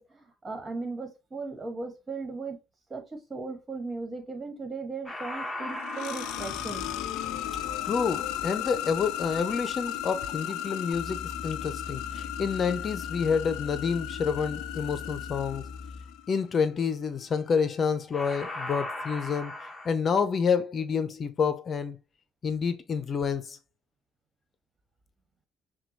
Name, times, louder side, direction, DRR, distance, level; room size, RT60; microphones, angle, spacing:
voice 1, 0.0-2.6 2.9-6.9, right 3 dB, 35° right, 1.7 m, -37 dB
sound 1, 5.1-12.2 17.5-17.8 18.1-19.9, left 1 dB, 10° left, 1.1 m, -40 dB
sound 2, 5.6-16.4, left 12 dB, 80° left, 0.3 m, -35 dB
voice 2, 7.8-15.7 16.3-19.6 19.8-22.0 22.4-23.6, left 6 dB, 50° left, 0.7 m, -28 dB
sound 3, 10.9-16.2, left 3 dB, 5° right, 2.7 m, -42 dB
5.9 x 2.3 x 3.0 m
supercardioid pair, 65°, 0 cm